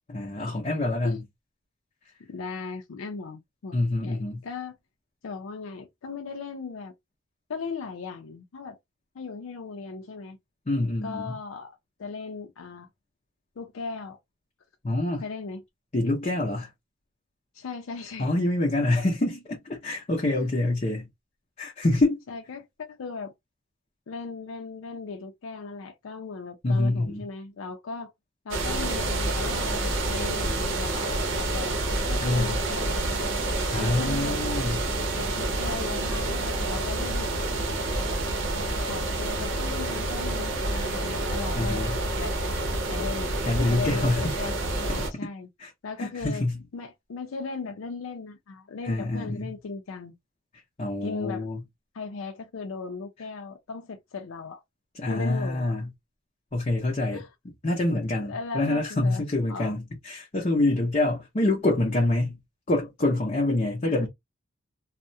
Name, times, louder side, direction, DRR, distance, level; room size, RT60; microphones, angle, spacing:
voice 1, 0.1-1.2 3.7-4.4 10.7-11.4 14.8-15.2 15.9-16.7 18.2-21.1 21.6-22.2 26.6-27.2 32.2-32.6 33.7-34.9 41.6-42.0 43.4-44.3 45.6-45.7 46.0-46.6 48.9-49.5 50.8-51.6 55.0-55.9 56.5-62.4 62.7-64.1, left 2 dB, 35° left, 0.6 m, -26 dB
voice 2, 2.2-4.8 5.2-6.9 7.5-8.8 9.1-10.4 11.0-12.9 13.6-14.2 15.2-15.6 17.5-18.3 22.3-23.3 24.1-28.1 28.4-33.3 33.8-34.4 35.1-37.3 38.0-38.1 38.5-41.9 42.2-42.4 42.9-43.3 43.7-45.5 45.8-46.4 46.7-50.1 51.0-51.5 51.9-54.6 55.1-55.8 57.1-57.3 58.2-59.8 63.8-64.1, left 4 dB, 90° left, 0.4 m, -37 dB
sound 1, 28.5-45.1, right 2 dB, 75° right, 0.7 m, -28 dB
2.3 x 2.0 x 2.6 m
head